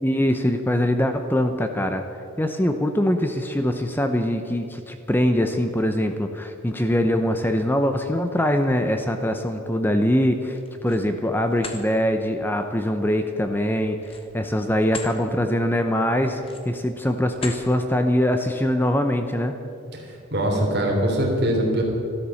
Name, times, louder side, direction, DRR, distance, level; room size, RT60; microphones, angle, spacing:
voice 1, 0.0-2.0 2.4-19.5, left 1 dB, 10° left, 6 dB, 0.6 m, -23 dB
sound 1, 10.5-11.1 11.5-11.8 14.0-15.2 15.6-15.8 16.4-16.8 17.3-17.7, left 4 dB, 25° left, 1.3 m, -38 dB
voice 2, 19.9-21.8, right 1 dB, 50° right, -1 dB, 3.3 m, -23 dB
13.5 x 12.5 x 7.1 m, 2.5 s
head